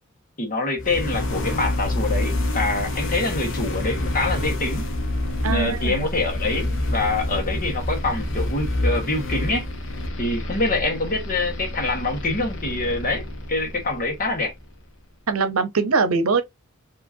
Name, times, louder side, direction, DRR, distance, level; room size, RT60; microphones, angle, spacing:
voice 1, 0.4-4.8 5.4-9.7 10.2-13.2 13.5-14.5, left 2 dB, 40° left, 1.4 m, -25 dB
sound 1, 0.8-14.7, left 1 dB, 60° left, 1.0 m, -27 dB
voice 2, 5.4-6.1 15.3-16.4, right 4 dB, 90° right, 0.8 m, -22 dB
4.9 x 3.0 x 2.7 m
head